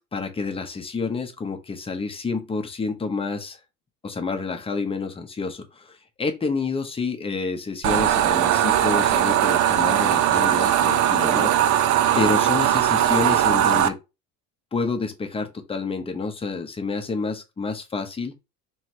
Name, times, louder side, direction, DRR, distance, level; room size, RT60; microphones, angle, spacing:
voice 1, 0.1-3.6 4.0-14.0 14.7-18.4, left 4 dB, 15° left, 0.8 m, -29 dB
sound 1, 7.8-13.9, right 11 dB, 55° right, 0.5 m, -19 dB
3.2 x 2.9 x 4.4 m
cardioid pair, 130°, 36 cm